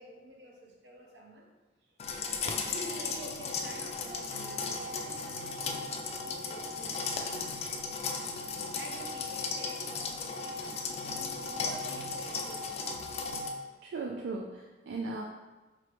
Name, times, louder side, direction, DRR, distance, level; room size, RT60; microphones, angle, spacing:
voice 1, 0.0-1.5 1.8-7.2 8.7-12.7, right 1 dB, 70° right, 0 dB, 0.8 m, -49 dB
sound 1, 2.0-13.5, left 4 dB, 35° left, 0.3 m, -36 dB
voice 2, 13.8-15.2, right 3 dB, 90° right, 0 dB, 0.4 m, -37 dB
3.9 x 3.1 x 3.1 m, 1.2 s
head